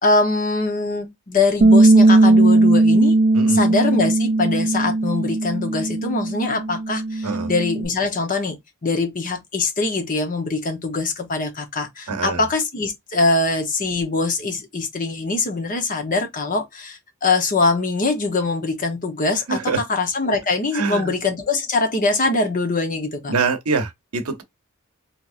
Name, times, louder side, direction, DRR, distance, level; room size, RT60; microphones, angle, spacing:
voice 1, 0.0-3.2 3.5-8.6 8.8-23.3, left 3 dB, 40° left, 0.9 m, -23 dB
Bass guitar, 1.6-7.9, right 2 dB, 30° right, 0.3 m, -17 dB
voice 2, 12.1-12.4 19.5-19.8 20.7-21.1 23.3-24.4, right 4 dB, 90° right, 0.8 m, -24 dB
3.5 x 2.9 x 2.5 m
head